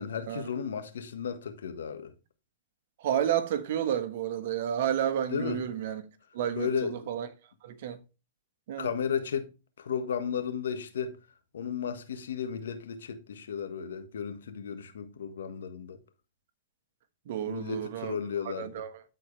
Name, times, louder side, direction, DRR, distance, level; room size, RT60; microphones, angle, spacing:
voice 1, 0.0-2.1 5.3-5.6 6.6-7.1 8.8-9.5 9.8-11.2 11.5-16.0 17.4-18.7, left 7 dB, 80° left, 1.5 m, -34 dB
voice 2, 3.0-6.0 6.3-7.3 7.6-8.0 8.7-8.9 17.3-18.2 18.4-19.0, right 10 dB, 65° right, 1.3 m, -31 dB
13.0 x 4.6 x 3.2 m
hypercardioid pair, 125°, 0 cm